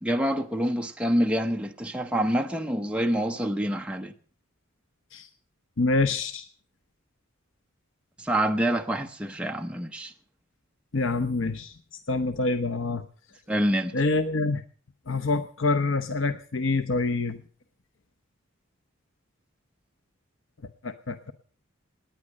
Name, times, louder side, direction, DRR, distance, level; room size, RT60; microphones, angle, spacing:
voice 1, 0.0-4.1 8.2-10.1 13.5-13.9, equal, 5° right, 0.7 m, -26 dB
voice 2, 5.8-6.5 10.9-11.7 12.1-13.0 13.9-14.6 15.1-17.4 20.8-21.3, left 3 dB, 65° left, 0.9 m, -26 dB
18.5 x 9.8 x 6.4 m
head